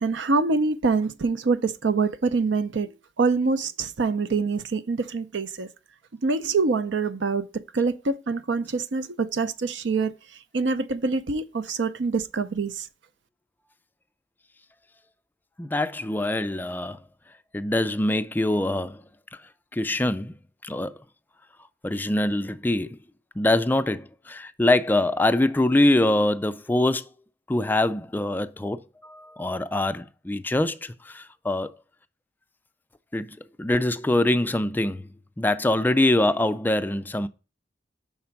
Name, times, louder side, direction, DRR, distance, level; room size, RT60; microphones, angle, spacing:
voice 1, 0.0-2.9 3.2-5.7 6.2-7.5 7.7-10.1 10.5-12.9, right 4 dB, 85° right, 0.6 m, -25 dB
voice 2, 15.6-17.0 17.5-19.0 19.3-19.4 19.7-20.3 20.6-21.0 21.8-23.0 23.4-27.0 27.5-31.7 33.1-35.1 35.4-37.3, left 1 dB, 10° left, 0.3 m, -24 dB
5.8 x 4.3 x 5.8 m
head